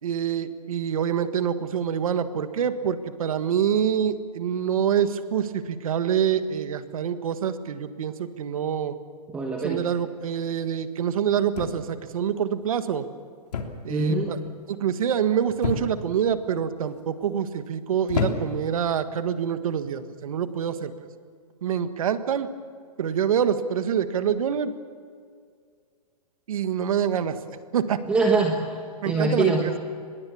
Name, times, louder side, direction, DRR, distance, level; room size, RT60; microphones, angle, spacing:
voice 1, 0.0-8.9 9.6-13.0 13.8-14.4 14.7-20.9 21.6-22.5 23.0-24.7 26.5-27.4 27.7-28.0 29.0-29.7, right 8 dB, 60° right, 10 dB, 1.6 m, -26 dB
voice 2, 9.3-9.8 13.9-14.3 28.1-28.8 29.0-29.6, right 3 dB, 5° right, 0 dB, 1.4 m, -23 dB
sound 1, 11.5-12.1 13.5-13.9 14.2-14.6 15.6-16.2 16.9-17.3 18.1-18.7 19.7-19.9, left 5 dB, 85° left, 3.2 m, -30 dB
24.5 x 21.5 x 7.1 m, 2.2 s
hypercardioid pair, 170°, 20 cm